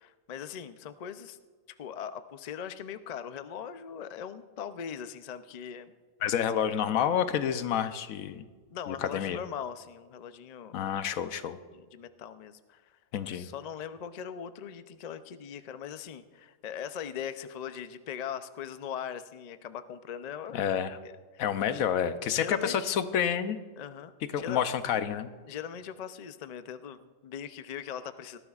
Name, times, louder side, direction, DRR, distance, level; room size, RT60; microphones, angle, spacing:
voice 1, 0.0-1.4 1.7-5.9 8.7-10.8 11.7-13.0 13.3-20.7 21.0-21.4 21.7-21.8 22.3-22.9 23.8-24.6 25.5-28.4, left 8 dB, 65° left, 11 dB, 0.4 m, -40 dB
voice 2, 6.2-8.4 8.9-9.4 10.7-11.6 13.1-13.5 20.5-21.0 21.4-23.6 24.3-25.3, left 8 dB, 85° left, 11 dB, 1.1 m, -29 dB
18.5 x 13.5 x 2.4 m, 1.5 s
omnidirectional pair, 1.4 m